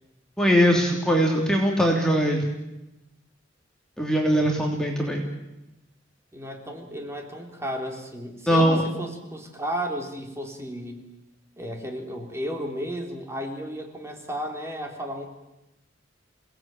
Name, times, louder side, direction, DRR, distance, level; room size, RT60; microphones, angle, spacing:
voice 1, 0.4-2.4 4.0-5.2 8.5-8.8, equal, 5° left, 0 dB, 3.1 m, -21 dB
voice 2, 6.3-11.0 11.6-15.3, equal, 15° right, 2 dB, 3.6 m, -33 dB
28.5 x 18.0 x 9.0 m, 0.95 s
head